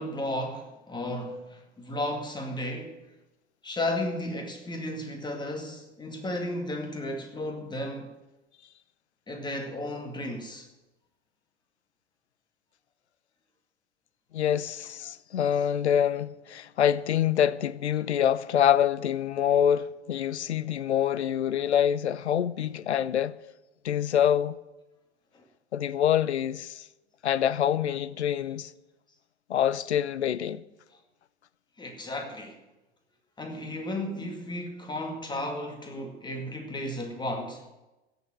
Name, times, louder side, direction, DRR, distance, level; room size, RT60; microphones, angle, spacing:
voice 1, 0.0-3.1 3.6-8.1 9.3-10.7 25.3-25.4 31.8-32.6 33.4-37.7, left 1 dB, 15° left, 2.1 m, -34 dB
voice 2, 14.3-23.3 23.8-24.6 25.7-26.8 27.2-28.7 29.5-30.6, left 9 dB, 70° left, 0.6 m, -25 dB
16.0 x 6.8 x 7.7 m
figure-of-eight pair, 85°, 34 cm